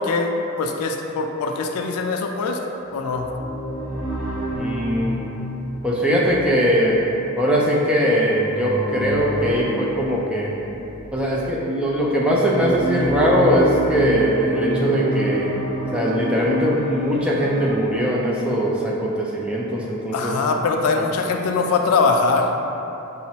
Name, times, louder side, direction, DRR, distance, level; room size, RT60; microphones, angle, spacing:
voice 1, 0.0-2.6 2.9-3.3 20.1-22.6, left 4 dB, 85° left, 3 dB, 0.3 m, -22 dB
sound 1, 2.9-11.4 12.0-17.7, right 1 dB, 45° right, 1.5 m, -28 dB
voice 2, 4.6-5.2 5.8-7.1 7.4-10.6 11.1-15.5 15.9-20.4, equal, 5° right, -5 dB, 0.3 m, -20 dB
5.8 x 2.0 x 2.7 m, 3.0 s
head